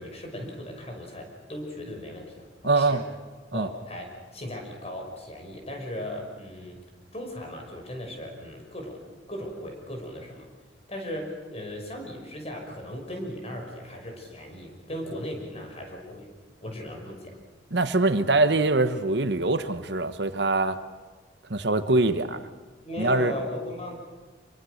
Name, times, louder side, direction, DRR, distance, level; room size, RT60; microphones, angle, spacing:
voice 1, 0.0-2.5 2.7-3.0 3.5-6.8 7.1-9.0 9.3-10.5 10.9-16.3 16.6-17.4 22.8-23.9, left 1 dB, 35° left, 2 dB, 5.7 m, -37 dB
voice 2, 2.6-3.0 3.5-3.7 17.7-20.8 21.5-22.4 23.0-23.3, right 2 dB, 65° right, 10 dB, 1.2 m, -23 dB
26.5 x 23.5 x 6.6 m, 1.4 s
head